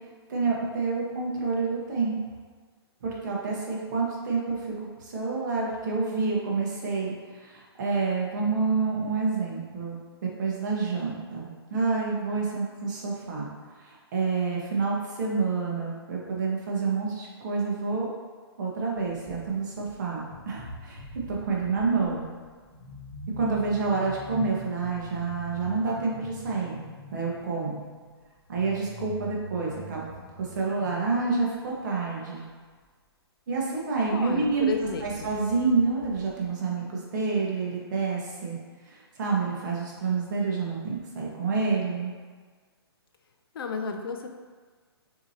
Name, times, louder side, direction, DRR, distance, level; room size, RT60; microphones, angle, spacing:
voice 1, 0.3-2.1 3.0-10.0 10.4-13.5 13.8-18.1 18.6-21.0 21.3-22.3 23.4-26.8 27.1-27.8 28.5-30.0 30.4-32.4 33.5-34.7 35.0-38.6 38.9-42.1, right 4 dB, 45° right, -3 dB, 1.1 m, -28 dB
sound 1, 19.0-19.9 20.2-32.4 33.6-33.7 33.9-36.5, left 1 dB, 15° left, 1.0 m, -45 dB
voice 2, 34.1-35.3 43.5-44.4, left 5 dB, 60° left, 5 dB, 0.5 m, -32 dB
6.5 x 2.9 x 2.8 m, 1.5 s
hypercardioid pair, 160°, 14 cm